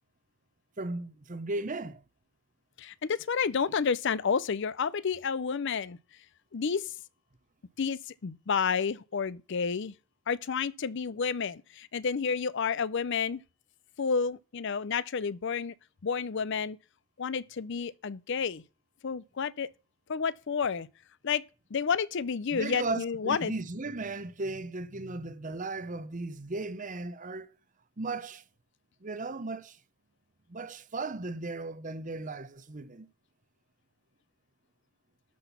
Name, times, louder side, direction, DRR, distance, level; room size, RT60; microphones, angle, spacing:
voice 1, 0.8-2.0 22.5-27.5 28.0-28.4 29.0-29.8 30.5-33.1, right 2 dB, 35° right, 0.8 m, -36 dB
voice 2, 2.8-6.0 6.5-6.9 7.8-9.9 10.3-13.4 14.0-15.7 16.0-16.8 17.2-18.6 19.0-19.7 20.1-20.9 21.2-21.4 21.7-23.5, left 6 dB, 55° left, 0.5 m, -30 dB
12.5 x 5.9 x 5.8 m
head